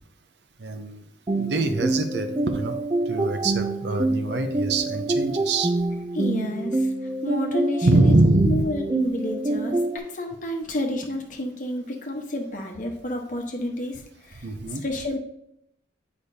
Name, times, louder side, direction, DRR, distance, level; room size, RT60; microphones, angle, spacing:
voice 1, 0.6-1.0 1.3-2.8 3.1-5.7 7.9-8.6 14.4-14.8, right 2 dB, 65° right, 7 dB, 0.7 m, -23 dB
sound 1, 1.3-10.0, right 2 dB, 25° right, 0.3 m, -26 dB
voice 2, 6.1-6.9 7.2-8.1 8.4-14.5 14.8-15.2, left 1 dB, 45° left, 2 dB, 1.1 m, -30 dB
8.1 x 5.2 x 2.7 m, 0.78 s
head